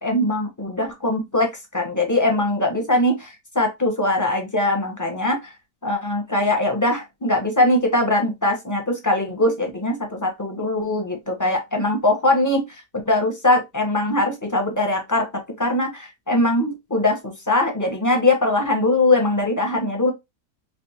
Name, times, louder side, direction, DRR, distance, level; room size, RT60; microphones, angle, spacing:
voice 1, 0.0-5.5 5.8-20.1, left 2 dB, 15° left, 0.6 m, -21 dB
3.4 x 3.3 x 2.8 m
omnidirectional pair, 1.8 m